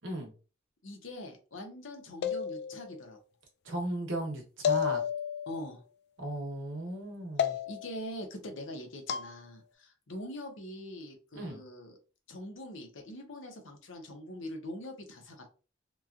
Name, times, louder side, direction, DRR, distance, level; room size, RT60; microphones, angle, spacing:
voice 1, 0.8-3.2 5.5-5.8 7.4-12.0 12.3-15.5, left 1 dB, 75° left, 3 dB, 0.8 m, -43 dB
sound 1, 2.2-3.0 4.6-5.6 7.4-8.0 9.1-9.3, left 8 dB, 60° left, 0.3 m, -31 dB
voice 2, 3.6-5.0 6.2-7.6 11.3-11.6, right 1 dB, 75° right, 2 dB, 1.0 m, -36 dB
2.9 x 2.3 x 2.4 m, 0.35 s
head